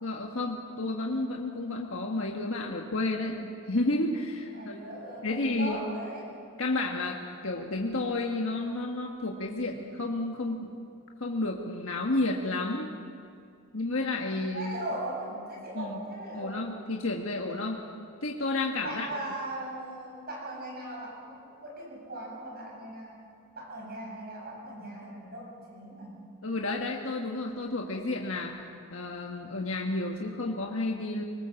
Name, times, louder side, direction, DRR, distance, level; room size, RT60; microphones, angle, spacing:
voice 1, 0.0-4.8 5.2-5.8 6.6-10.7 11.2-12.9 13.7-14.8 15.7-16.0 16.3-17.8 18.2-19.1 26.4-28.6 28.9-31.2, left 2 dB, 60° left, 0 dB, 1.5 m, -31 dB
voice 2, 4.4-6.2 14.5-16.7 18.8-23.2 23.5-26.3, right 1 dB, 45° right, -2 dB, 7.0 m, -39 dB
24.5 x 19.5 x 7.1 m, 2.4 s
head